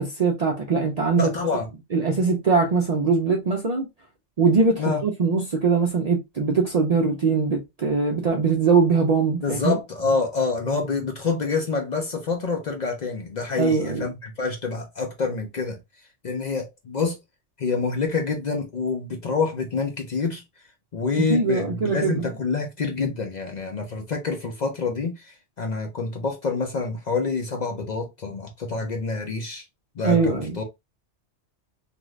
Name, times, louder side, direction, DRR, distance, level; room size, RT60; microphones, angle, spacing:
voice 1, 0.0-1.3 1.9-3.9 4.4-9.8 13.6-14.1 21.3-22.2 30.0-30.6, right 4 dB, 50° right, 0.4 m, -21 dB
voice 2, 1.2-1.7 4.8-5.0 9.4-15.8 16.2-17.2 17.6-20.4 20.9-29.6 30.0-30.6, left 4 dB, 50° left, 0.6 m, -27 dB
2.5 x 2.4 x 3.1 m
omnidirectional pair, 1.2 m